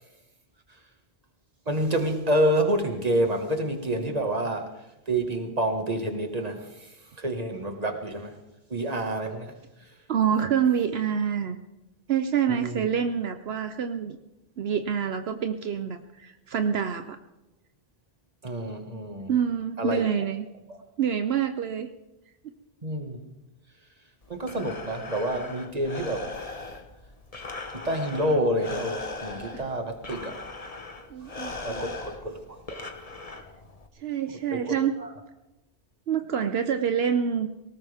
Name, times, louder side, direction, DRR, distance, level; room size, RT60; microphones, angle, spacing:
voice 1, 1.7-8.4 8.7-9.5 9.8-10.0 12.5-12.8 18.4-19.3 19.8-20.1 20.7-20.8 22.8-23.2 24.3-26.3 27.7-30.4 31.2-32.8 34.5-35.1, right 1 dB, 40° right, 5 dB, 1.9 m, -28 dB
voice 2, 10.1-11.6 12.1-14.2 14.6-17.2 19.3-20.5 21.0-21.9 31.1-31.9 34.0-34.9 36.1-37.5, right 8 dB, 75° right, 8 dB, 1.0 m, -26 dB
Breathing, 24.2-33.9, left 3 dB, 35° left, 1.3 m, -39 dB
19.5 x 18.0 x 3.6 m, 0.94 s
omnidirectional pair, 1.1 m